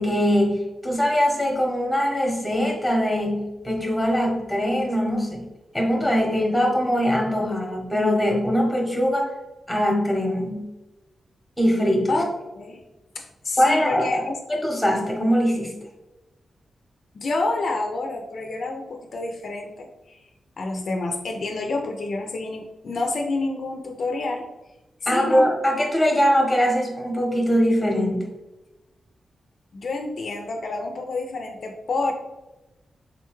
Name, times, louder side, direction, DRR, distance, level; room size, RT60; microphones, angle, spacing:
voice 1, 0.0-5.4 5.7-9.3 9.7-10.6 11.6-12.1 13.6-14.2 14.5-15.7 25.1-28.2, equal, 5° left, 0 dB, 0.8 m, -22 dB
voice 2, 13.2-14.3 17.1-20.2 20.6-24.5 25.0-25.5 29.7-32.1, left 3 dB, 60° left, 2 dB, 0.3 m, -28 dB
3.8 x 2.2 x 3.0 m, 1.0 s
wide cardioid pair, 125°, 0 cm